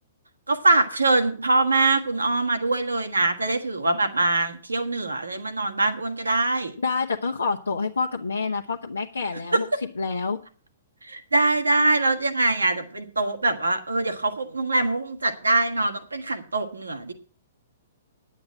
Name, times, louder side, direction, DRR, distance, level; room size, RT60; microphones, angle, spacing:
voice 1, 0.5-6.7 9.5-9.6 11.0-17.1, right 2 dB, 85° right, 6 dB, 1.6 m, -23 dB
voice 2, 6.8-9.7 10.0-10.4, left 4 dB, 80° left, 1 dB, 0.9 m, -27 dB
10.0 x 8.5 x 7.5 m, 0.41 s
figure-of-eight pair, 115°, 0 cm